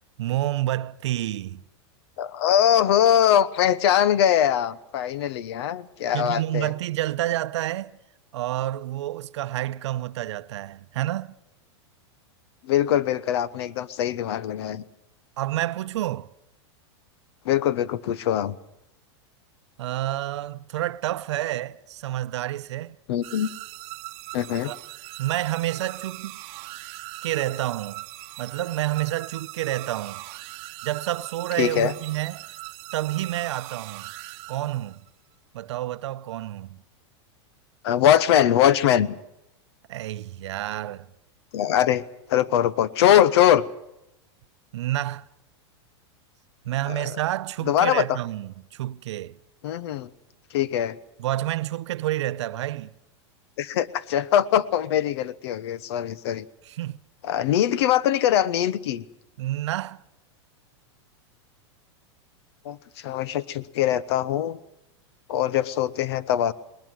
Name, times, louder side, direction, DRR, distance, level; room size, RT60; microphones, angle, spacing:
voice 1, 0.2-1.6 6.1-7.9 8.3-11.3 15.4-16.3 19.8-23.0 24.6-24.8 25.2-26.4 27.2-28.0 28.4-30.2 30.8-32.5 32.9-34.1 34.5-35.0 35.5-36.8 39.9-41.1 44.7-45.3 46.6-49.4 51.2-52.9 56.7-57.0 59.4-60.0, right 14 dB, 75° right, 0.8 m, -29 dB
voice 2, 2.2-6.7 12.6-14.8 17.4-18.6 23.1-23.5 24.3-24.7 31.6-31.9 37.8-39.2 41.5-42.0 42.3-43.6 46.9-47.1 47.6-48.2 49.6-50.1 50.5-51.0 53.6-56.4 57.2-59.0 62.6-64.6 65.3-66.5, left 10 dB, 65° left, 1.1 m, -22 dB
sound 1, 23.2-35.1, right 21 dB, 40° right, 1.0 m, -40 dB
20.5 x 20.0 x 7.7 m
supercardioid pair, 145°, 15 cm